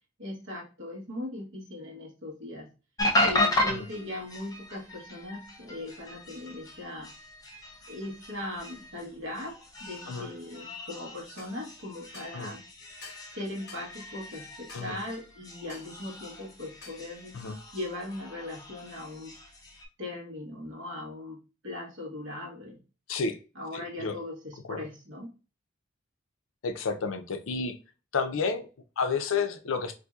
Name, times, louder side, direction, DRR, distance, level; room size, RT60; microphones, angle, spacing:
voice 1, 0.2-2.7 3.2-7.1 7.9-9.5 9.8-12.6 13.3-17.3 17.7-19.3 20.0-21.4 21.6-22.8 23.5-25.3, left 1 dB, 60° right, -1 dB, 1.1 m, -39 dB
sound 1, 3.0-19.9, left 1 dB, 20° left, 0.5 m, -35 dB
sound 2, 11.4-11.5 12.1-12.4 13.0-13.3 13.7-13.9 14.7-14.9 15.7-15.9 16.8-17.0, left 4 dB, 55° left, 1.1 m, -48 dB
voice 2, 23.7-24.2 24.7-24.8 26.6-27.7 28.1-28.7 29.0-29.9, left 5 dB, 75° left, 8 dB, 0.5 m, -30 dB
4.1 x 2.6 x 2.3 m, 0.33 s
head